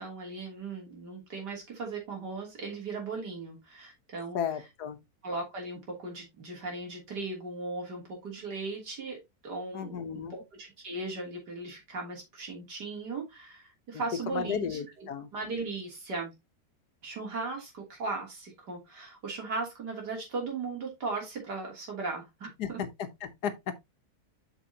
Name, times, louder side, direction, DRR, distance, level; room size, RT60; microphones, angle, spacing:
voice 1, 0.0-4.7 5.2-16.3 17.0-22.8, right 3 dB, 85° right, 3.6 m, -38 dB
voice 2, 4.3-5.0 9.7-10.3 14.3-15.3 22.6-22.7 23.2-23.8, left 7 dB, 75° left, 1.5 m, -34 dB
8.1 x 6.1 x 2.8 m
omnidirectional pair, 1.7 m